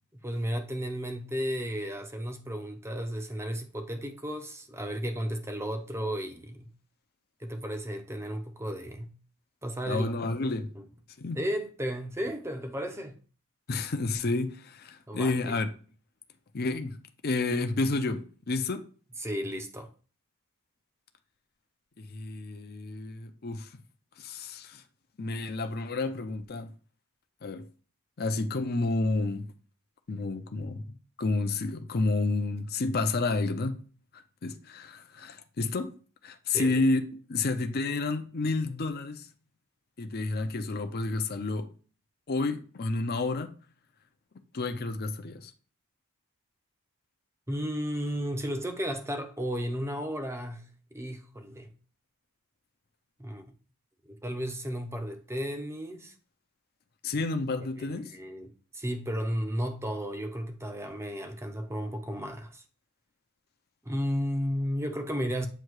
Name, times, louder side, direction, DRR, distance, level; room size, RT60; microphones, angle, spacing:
voice 1, 0.1-6.7 7.4-9.1 9.6-10.1 10.8-10.9 11.3-13.2 15.1-15.6 19.2-19.9 36.5-36.8 47.5-51.7 53.2-53.4 54.1-56.1 57.8-62.6 63.9-65.5, equal, 10° right, 0.6 m, -34 dB
voice 2, 9.9-10.7 11.2-11.4 13.7-15.7 16.5-17.0 17.2-18.9 22.0-23.8 24.2-24.8 25.2-26.7 27.4-27.7 28.2-29.5 30.1-33.8 34.4-35.9 36.2-37.0 37.3-39.3 40.0-41.7 42.3-43.6 44.5-45.5 57.0-58.1, left 3 dB, 45° left, 0.6 m, -30 dB
7.7 x 2.8 x 4.6 m
head